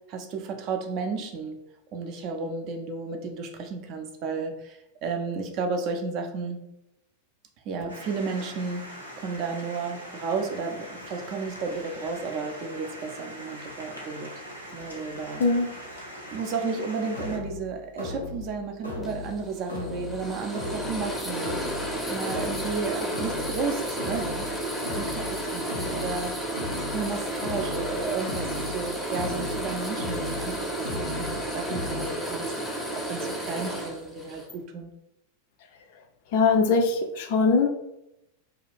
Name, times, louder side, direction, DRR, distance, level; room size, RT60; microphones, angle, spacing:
voice 1, 0.1-1.6 1.9-6.6 7.7-14.3 14.7-15.4 16.3-21.6 22.1-26.4 26.9-32.5 32.9-34.9, right 4 dB, 40° right, 5 dB, 0.4 m, -33 dB
sound 1, 7.9-17.4, equal, 90° right, 0.7 m, -42 dB
voice 2, 15.4-15.7 36.3-37.7, left 4 dB, 50° left, 4 dB, 0.4 m, -21 dB
sound 2, 17.1-32.1, left 3 dB, 90° left, 0.7 m, -37 dB
sound 3, 19.0-34.5, right 1 dB, 5° left, 0.6 m, -32 dB
2.4 x 2.3 x 3.3 m, 0.86 s
figure-of-eight pair, 90°, 0 cm